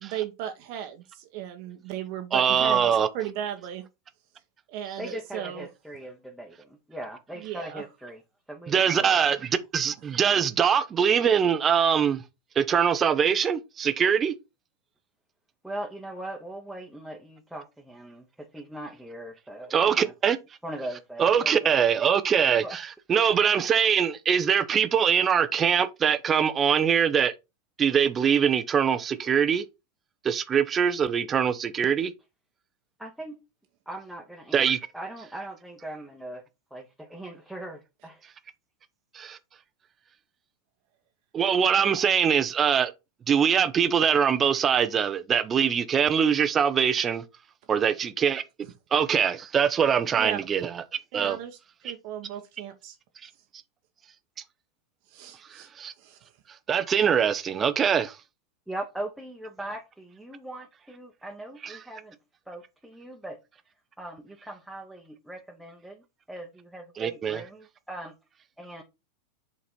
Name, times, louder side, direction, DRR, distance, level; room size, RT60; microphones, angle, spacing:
voice 1, 0.0-2.9 3.1-3.8 4.7-5.7 7.4-7.8 50.2-50.4 51.1-53.0 55.1-55.7 56.0-56.3, right 10 dB, 45° right, 1.0 m, -36 dB
voice 2, 2.3-3.1 8.7-12.2 12.6-14.3 19.7-20.4 21.2-22.8 23.1-27.3 27.8-29.6 30.2-32.1 34.5-34.8 39.1-39.4 41.3-42.9 43.3-47.2 47.7-48.4 48.9-50.7 51.1-51.4 53.2-53.3 55.5-55.9 56.7-58.2 61.6-61.7 67.0-67.4, right 7 dB, 25° right, 0.7 m, -23 dB
voice 3, 5.0-8.2 8.5-9.4 15.6-20.1 20.6-22.0 22.6-22.8 33.0-33.4 33.9-34.7 34.9-36.4 36.7-38.2 58.7-62.2 62.5-63.4 64.0-68.1 68.6-68.8, right 1 dB, ahead, 1.1 m, -40 dB
7.6 x 4.1 x 4.3 m
figure-of-eight pair, 90°, 0 cm